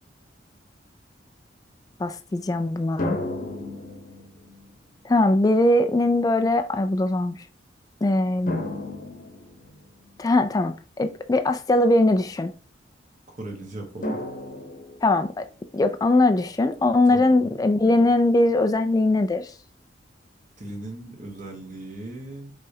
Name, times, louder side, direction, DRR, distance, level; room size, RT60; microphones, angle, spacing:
voice 1, 2.0-3.2 5.0-7.4 8.0-8.6 10.2-12.5 15.0-15.4 15.7-19.5, left 2 dB, 20° left, 0.3 m, -21 dB
sound 1, 3.0-4.7 5.7-5.8 8.5-10.2 14.0-15.3, left 2 dB, 50° left, 0.9 m, -33 dB
voice 2, 13.4-14.2 17.1-17.5 20.6-22.5, right 1 dB, 45° right, 1.3 m, -38 dB
5.3 x 3.3 x 2.8 m
head